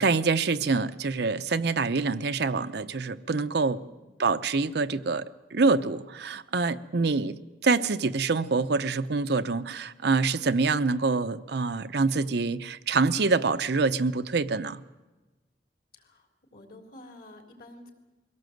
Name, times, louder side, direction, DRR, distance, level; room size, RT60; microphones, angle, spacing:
voice 1, 0.0-3.8 4.2-14.8, right 4 dB, 65° right, 10 dB, 0.7 m, -26 dB
voice 2, 15.9-17.9, left 1 dB, 55° left, 4 dB, 3.4 m, -50 dB
22.5 x 17.0 x 7.8 m, 1.1 s
head